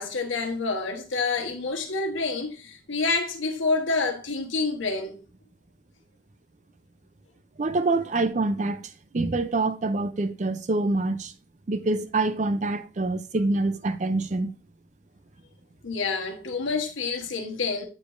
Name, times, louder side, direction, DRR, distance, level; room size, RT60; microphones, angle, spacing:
voice 1, 0.0-5.2 15.8-17.8, left 3 dB, 85° left, 1.2 m, -28 dB
voice 2, 7.6-11.3 11.7-14.5, right 2 dB, 40° right, 0.4 m, -26 dB
8.4 x 4.9 x 2.5 m
head